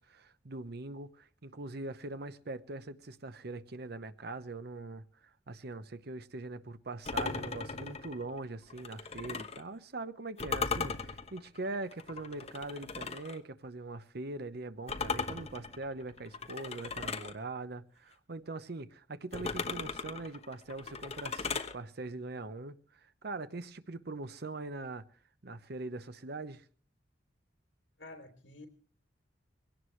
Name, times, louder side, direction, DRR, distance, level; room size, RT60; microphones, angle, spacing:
voice 1, 0.0-5.0 5.5-25.0 25.4-26.6, right 2 dB, 60° right, 0.9 m, -42 dB
sound 1, 7.1-9.6 10.4-13.4 14.9-17.4 19.3-21.7, left 4 dB, 35° left, 1.1 m, -37 dB
voice 2, 28.0-28.7, left 2 dB, 80° left, 3.1 m, -49 dB
21.5 x 17.5 x 3.2 m
head